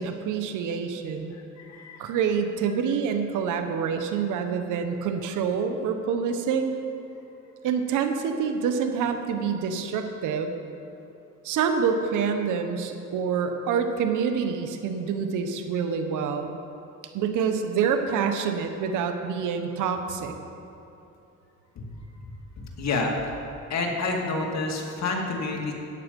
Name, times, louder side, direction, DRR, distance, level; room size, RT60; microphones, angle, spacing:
voice 1, 0.0-1.3 2.0-6.7 7.6-10.5 11.4-16.6 17.1-20.3, right 6 dB, 90° right, 6 dB, 1.0 m, -27 dB
voice 2, 1.3-2.1 21.8-21.9 22.6-23.1 23.7-25.7, left 3 dB, 60° left, 0 dB, 2.1 m, -29 dB
13.5 x 8.9 x 5.2 m, 2.8 s
cardioid pair, 90°, 30 cm